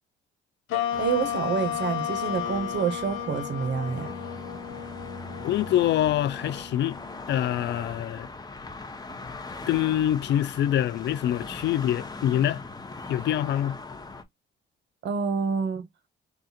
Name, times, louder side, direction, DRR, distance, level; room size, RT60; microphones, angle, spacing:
sound 1, 0.7-7.4, left 10 dB, 85° left, 0.9 m, -33 dB
sound 2, 0.9-14.2, left 3 dB, 20° left, 0.9 m, -40 dB
voice 1, 1.0-4.1 15.0-15.9, right 6 dB, 65° right, 1.1 m, -28 dB
voice 2, 5.4-7.0 7.3-8.3 9.7-12.6 13.1-13.8, left 12 dB, 65° left, 0.4 m, -25 dB
3.7 x 2.4 x 4.2 m
cardioid pair, 90°, 20 cm